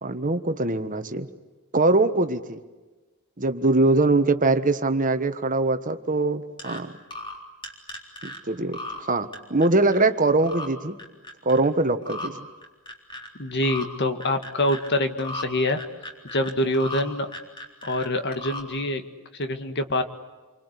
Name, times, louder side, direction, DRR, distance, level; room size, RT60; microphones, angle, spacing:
voice 1, 0.0-1.3 1.7-2.6 3.4-6.9 8.2-8.8 9.1-11.0 11.4-12.5, right 2 dB, 35° right, 10 dB, 1.4 m, -22 dB
sound 1, 6.6-6.8 7.1-7.4 7.6-8.4 8.7-9.0 9.3-10.1 10.4-10.7 11.0-11.7 12.0-12.3 12.6-13.3 13.6-13.9 14.2-14.9 15.2-15.4 15.8-17.0 17.3-18.1 18.3-18.6, left 2 dB, 20° left, 3.8 m, -36 dB
voice 2, 13.4-15.8 16.3-17.3 17.8-19.0 19.3-20.0, left 1 dB, 50° left, 8 dB, 2.0 m, -25 dB
28.5 x 24.5 x 8.4 m, 1.2 s
head